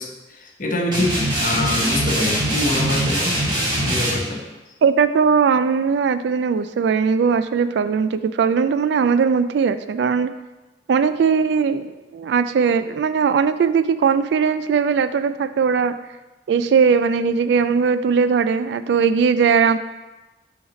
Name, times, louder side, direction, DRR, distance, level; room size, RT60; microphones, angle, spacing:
voice 1, 0.0-3.4 3.8-4.5, left 1 dB, 50° left, 1 dB, 0.9 m, -25 dB
sound 1, 0.9-4.2, right 1 dB, 25° right, 1.8 m, -22 dB
voice 2, 4.8-10.3 10.9-16.0 16.5-19.8, right 6 dB, 70° right, 12 dB, 0.3 m, -19 dB
5.7 x 4.1 x 5.1 m, 1.1 s
head